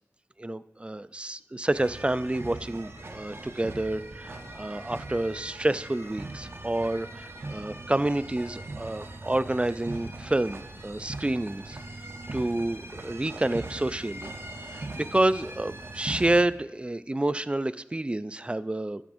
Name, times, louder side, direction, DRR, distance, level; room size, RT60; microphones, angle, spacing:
voice 1, 0.4-11.8 12.3-14.3 14.6-19.0, right 1 dB, 20° right, 15 dB, 0.3 m, -29 dB
sound 1, 1.7-16.4, right 2 dB, 50° right, 0.8 m, -40 dB
12.0 x 10.0 x 2.6 m, 0.99 s
wide cardioid pair, 60°, 5 cm